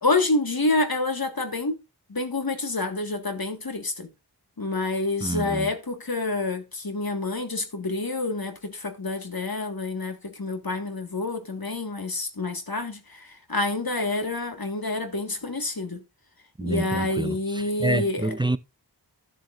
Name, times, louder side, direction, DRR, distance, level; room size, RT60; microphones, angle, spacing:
voice 1, 0.0-1.7 2.1-4.1 4.6-16.0 16.6-18.4, left 2 dB, 55° left, 1.8 m, -28 dB
voice 2, 5.2-5.7 16.6-18.6, right 2 dB, 10° right, 0.4 m, -28 dB
13.0 x 7.6 x 2.5 m
wide cardioid pair, 50°, 42 cm